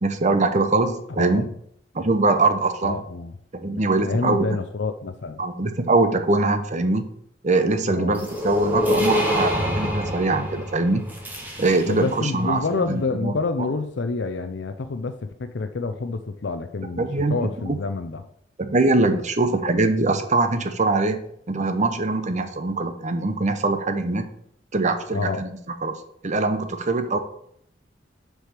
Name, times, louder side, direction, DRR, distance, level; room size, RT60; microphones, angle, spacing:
voice 1, 0.0-1.4 1.9-3.0 3.5-4.5 5.4-7.1 7.4-11.0 11.6-13.3 17.0-17.3 17.6-17.8 18.6-21.2 21.5-24.2 24.7-25.5 25.8-26.0 26.2-27.2, right 3 dB, 40° right, 8 dB, 0.8 m, -22 dB
voice 2, 1.2-1.5 2.8-3.3 3.7-5.4 7.9-8.2 11.9-18.3 25.1-25.4, left 3 dB, 70° left, 8 dB, 0.6 m, -28 dB
sound 1, 8.1-12.2, left 1 dB, 10° right, 1.6 m, -26 dB
6.5 x 5.0 x 6.7 m, 0.69 s
head